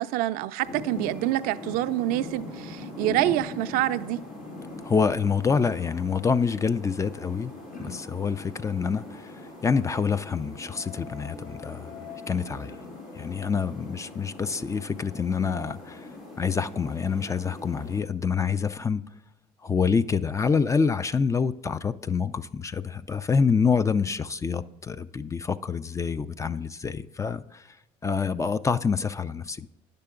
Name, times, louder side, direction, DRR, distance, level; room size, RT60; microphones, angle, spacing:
voice 1, 0.0-4.2, right 14 dB, 75° right, 0.4 m, -26 dB
sound 1, 0.6-18.0, left 2 dB, 85° left, 3.0 m, -41 dB
voice 2, 4.8-7.5 7.8-11.9 12.3-12.7 13.1-16.1 16.4-19.0 19.6-27.6 28.0-29.7, left 5 dB, 20° left, 0.4 m, -26 dB
9.6 x 6.7 x 3.7 m
supercardioid pair, 90°, 15 cm